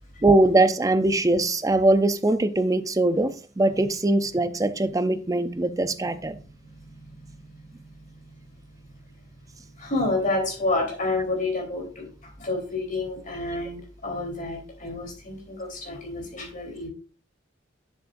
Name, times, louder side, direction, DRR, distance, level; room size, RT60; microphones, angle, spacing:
voice 1, 0.2-6.4, right 2 dB, 20° right, 0.5 m, -21 dB
voice 2, 9.8-16.9, left 2 dB, 45° left, 3.6 m, -29 dB
9.5 x 7.4 x 2.6 m
head